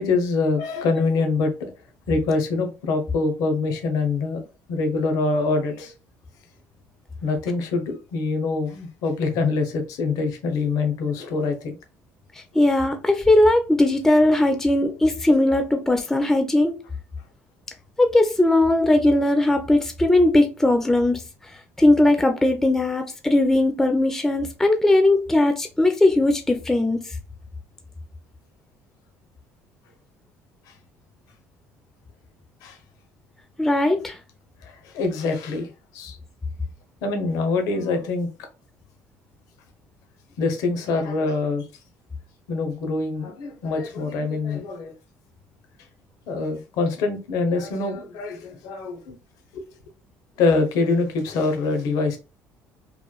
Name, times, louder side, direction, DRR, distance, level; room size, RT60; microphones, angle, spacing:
voice 1, 0.0-1.7 2.1-5.9 7.2-11.8 30.7-30.8 32.6-32.8 34.6-36.2 37.0-38.3 40.4-41.7 42.5-44.9 46.3-49.2 49.5-49.6 50.4-52.2, left 3 dB, 75° left, 0.6 m, -24 dB
voice 2, 12.5-16.7 18.0-21.2 21.8-27.0 33.6-34.2, left 1 dB, 5° left, 0.3 m, -19 dB
3.0 x 2.1 x 2.2 m
cardioid pair, 120°, 6 cm